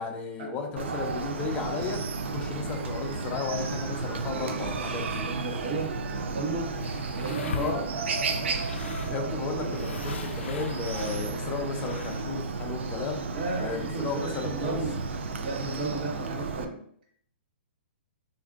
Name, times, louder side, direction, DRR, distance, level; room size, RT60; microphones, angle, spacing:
voice 1, 0.0-2.0 2.2-5.2 7.5-7.8 9.1-13.2 13.6-14.8, left 5 dB, 20° left, 2 dB, 0.6 m, -34 dB
Chicken rooster, 0.8-16.7, right 4 dB, 85° right, 0.5 m, -33 dB
sound 1, 1.7-5.2, right 1 dB, 30° right, 1.0 m, -49 dB
voice 2, 5.2-6.7 7.1-7.7 13.3-15.0 15.4-16.8, right 3 dB, 50° right, -2 dB, 1.2 m, -34 dB
sound 2, 6.1-12.4, left 4 dB, 85° left, 0.4 m, -41 dB
3.5 x 2.6 x 2.4 m, 0.63 s
hypercardioid pair, 155°, 6 cm